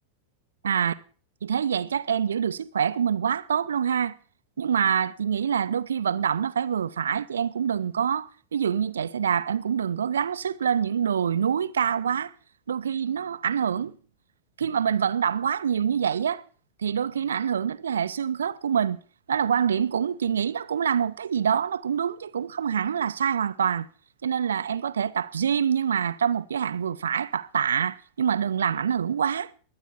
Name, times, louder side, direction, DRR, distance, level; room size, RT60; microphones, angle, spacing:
voice 1, 0.6-0.9 1.4-4.1 4.6-12.3 12.7-13.9 14.6-16.4 16.8-19.0 19.3-23.9 24.2-29.5, right 8 dB, 65° right, 0.7 m, -26 dB
21.5 x 9.4 x 4.5 m
figure-of-eight pair, 90°, 0 cm